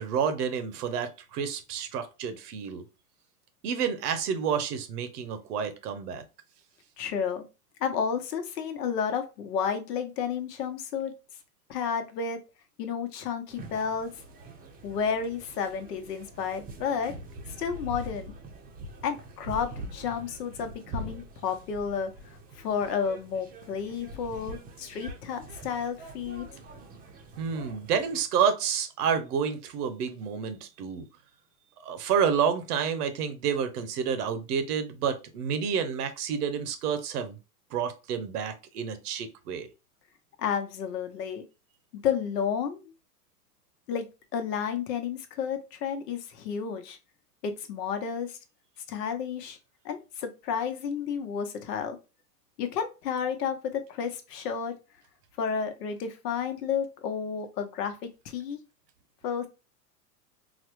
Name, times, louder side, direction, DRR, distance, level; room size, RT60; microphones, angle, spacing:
voice 1, 0.0-2.8 3.6-6.2 27.4-31.0 31.8-37.3 37.7-39.7, right 7 dB, 70° right, 10 dB, 0.9 m, -29 dB
voice 2, 7.0-7.5 7.8-11.1 11.7-12.4 12.8-14.1 14.8-17.1 17.6-18.3 19.0-22.1 22.6-26.5 40.4-41.4 41.9-42.8 43.9-47.0 47.4-48.4 48.9-49.6 49.8-52.0 52.6-54.7 55.4-58.6 59.2-59.5, left 7 dB, 75° left, 7 dB, 0.9 m, -31 dB
sound 1, 13.5-28.2, right 1 dB, 20° right, 0.6 m, -44 dB
3.9 x 2.2 x 3.0 m, 0.29 s
hypercardioid pair, 115°, 48 cm